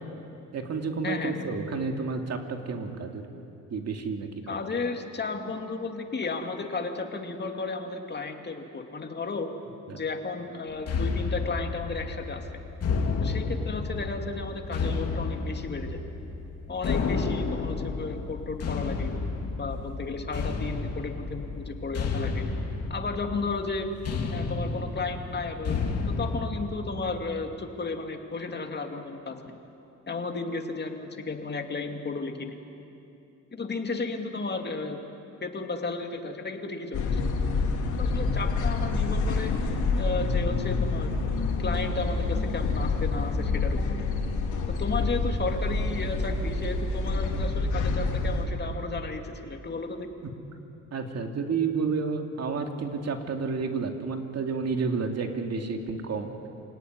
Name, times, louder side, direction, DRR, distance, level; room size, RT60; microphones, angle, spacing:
voice 1, 0.5-3.2 3.7-4.6 9.9-10.0 50.9-56.3, right 4 dB, 55° right, 4 dB, 2.7 m, -30 dB
voice 2, 1.0-1.4 4.5-9.5 9.9-12.5 13.2-16.0 16.7-19.1 19.6-22.5 22.9-23.9 24.3-29.6 30.1-32.5 33.5-35.0 35.4-37.2 38.0-39.5 39.9-43.8 44.7-50.1, left 3 dB, 35° left, 4 dB, 2.5 m, -34 dB
sound 1, 10.9-26.5, left 4 dB, 55° left, 3.1 m, -31 dB
sound 2, 36.9-48.5, left 3 dB, 80° left, 3.3 m, -27 dB
27.5 x 18.0 x 9.7 m, 2.8 s
cardioid pair, 90°, 30 cm